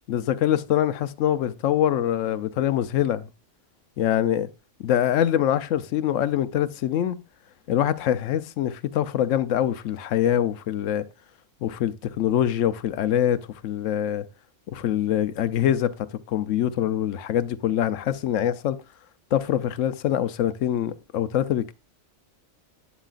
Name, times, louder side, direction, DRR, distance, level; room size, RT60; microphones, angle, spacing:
voice 1, 0.1-3.3 4.0-4.5 4.8-7.2 7.7-11.1 11.6-14.3 14.7-15.9 16.3-18.8 19.3-21.7, left 10 dB, 85° left, 1.0 m, -24 dB
11.5 x 8.2 x 2.4 m
omnidirectional pair, 1.3 m